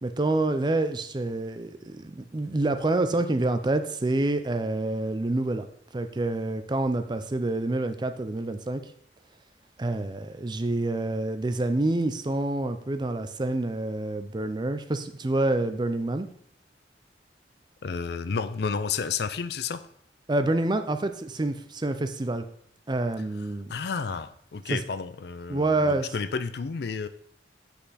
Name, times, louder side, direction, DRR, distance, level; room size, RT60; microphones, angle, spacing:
voice 1, 0.0-5.7 5.9-8.8 9.8-16.3 20.3-22.5 22.9-23.7 24.7-24.8 25.5-26.1, right 2 dB, 25° right, 9 dB, 0.5 m, -27 dB
voice 2, 17.8-19.8 23.7-27.1, left 5 dB, 60° left, 13 dB, 0.5 m, -31 dB
8.2 x 5.5 x 4.2 m, 0.65 s
head